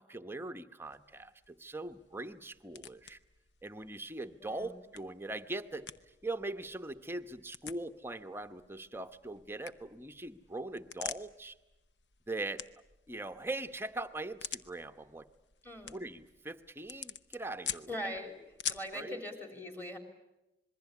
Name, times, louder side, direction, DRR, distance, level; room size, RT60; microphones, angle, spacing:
voice 1, 0.0-3.2 3.6-5.9 6.2-11.5 12.3-12.6 13.1-15.3 15.8-17.9 18.9-19.2, right 2 dB, 15° right, 9 dB, 0.9 m, -41 dB
sound 1, 0.8-19.0, left 9 dB, 80° left, 0.9 m, -48 dB
voice 2, 4.4-4.8 15.6-16.0 17.9-18.4 18.7-20.0, left 1 dB, 10° left, 6 dB, 3.8 m, -41 dB
26.5 x 21.5 x 8.3 m, 0.95 s
head